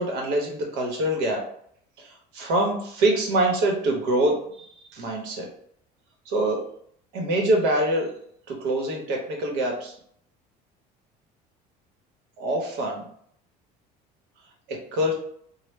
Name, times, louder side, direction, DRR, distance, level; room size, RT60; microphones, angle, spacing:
voice 1, 0.0-1.5 2.0-5.5 6.2-6.7 7.1-8.1 8.5-9.9 12.4-13.1 14.7-15.1, right 1 dB, 85° right, 0 dB, 1.0 m, -25 dB
3.2 x 2.2 x 3.2 m, 0.65 s
cardioid pair, 110°, 19 cm